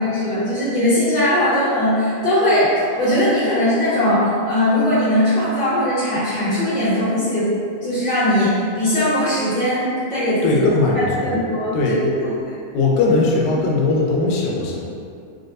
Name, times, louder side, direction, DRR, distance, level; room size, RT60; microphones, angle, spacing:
voice 1, 0.0-7.5 7.8-10.6 11.2-11.9, left 1 dB, 50° left, -15 dB, 1.5 m, -19 dB
voice 2, 10.4-11.4 11.7-12.3 12.7-14.8, left 3 dB, 90° left, -3 dB, 1.7 m, -19 dB
6.2 x 2.2 x 2.5 m, 2.4 s
omnidirectional pair, 4.2 m